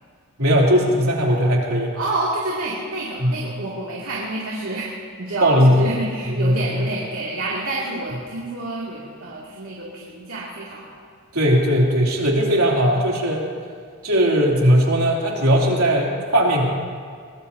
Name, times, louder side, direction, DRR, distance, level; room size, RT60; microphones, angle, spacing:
voice 1, 0.4-2.0 3.2-3.3 5.4-5.8 6.3-6.6 11.3-13.4 14.0-16.6, equal, 90° right, -2 dB, 3.1 m, -18 dB
voice 2, 1.9-11.0, right 2 dB, 70° right, -6 dB, 2.6 m, -28 dB
22.5 x 20.0 x 2.8 m, 2.1 s
head